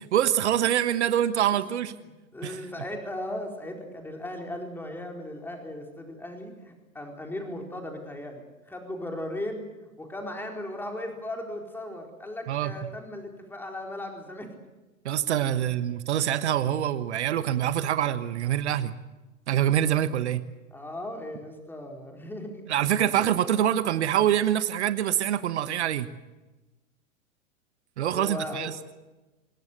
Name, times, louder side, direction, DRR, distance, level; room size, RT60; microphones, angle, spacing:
voice 1, 0.0-1.9 2.4-2.6 12.5-12.7 15.0-18.9 19.5-20.4 22.7-26.1 28.0-28.7, right 11 dB, 50° right, 13 dB, 1.3 m, -25 dB
voice 2, 1.6-2.0 2.3-14.5 15.6-15.8 20.7-22.6 23.0-23.2 28.1-28.7, left 1 dB, 5° left, 2 dB, 4.4 m, -37 dB
27.0 x 19.5 x 8.1 m, 1.1 s
figure-of-eight pair, 105°, 42 cm